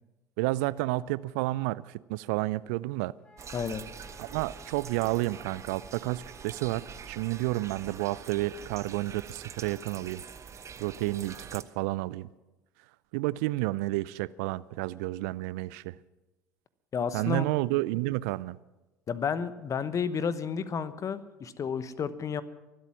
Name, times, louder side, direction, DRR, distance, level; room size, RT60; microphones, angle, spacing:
voice 1, 0.4-3.2 4.2-10.2 10.8-12.3 13.1-16.0 17.1-18.6, right 19 dB, 65° right, 20 dB, 0.4 m, -31 dB
Wind instrument woodwind instrument, 3.2-8.0, left 2 dB, 10° left, 2.7 m, -56 dB
sound 1, 3.4-11.6, right 6 dB, 30° right, 1.0 m, -45 dB
voice 2, 16.9-17.5 19.1-22.4, left 6 dB, 35° left, 14 dB, 1.0 m, -31 dB
23.5 x 8.3 x 6.1 m, 1.0 s
hypercardioid pair, 70°, 9 cm